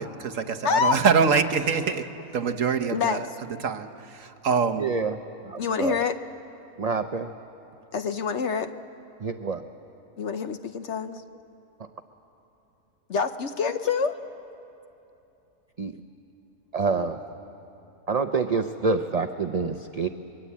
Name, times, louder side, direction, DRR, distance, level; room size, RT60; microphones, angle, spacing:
voice 1, 0.0-2.1 2.3-3.3 3.6-4.9, right 5 dB, 60° right, 6 dB, 1.4 m, -24 dB
voice 2, 0.6-1.0 2.9-3.2 5.6-6.1 7.9-8.7 10.2-11.2 13.1-14.2, left 6 dB, 55° left, 9 dB, 1.0 m, -26 dB
voice 3, 4.8-5.2 5.4-6.0 6.8-7.3 9.2-9.6 15.8-16.0 16.7-17.2 18.1-20.1, right 4 dB, 45° right, 7 dB, 0.5 m, -27 dB
27.5 x 22.5 x 8.4 m, 2.8 s
omnidirectional pair, 1.6 m